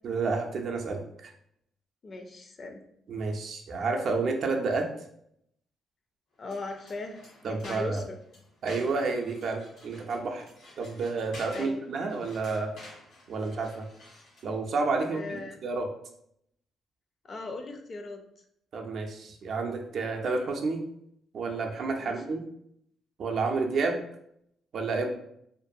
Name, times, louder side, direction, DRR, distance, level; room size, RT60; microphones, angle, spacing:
voice 1, 0.0-1.3 3.1-4.9 7.4-8.0 8.6-10.4 10.8-12.7 13.3-13.9 14.4-15.9 18.7-20.8 21.3-22.4 23.2-24.0 24.7-25.2, right 3 dB, 60° right, 3 dB, 0.4 m, -30 dB
voice 2, 2.0-2.8 6.4-7.2 7.5-8.2 11.5-11.8 15.1-15.6 17.3-18.2 22.0-22.1, left 3 dB, 45° left, 4 dB, 0.4 m, -38 dB
sound 1, 6.4-14.5, left 1 dB, 80° left, 1.2 m, -50 dB
2.5 x 2.2 x 2.6 m, 0.73 s
cardioid pair, 90°, 0 cm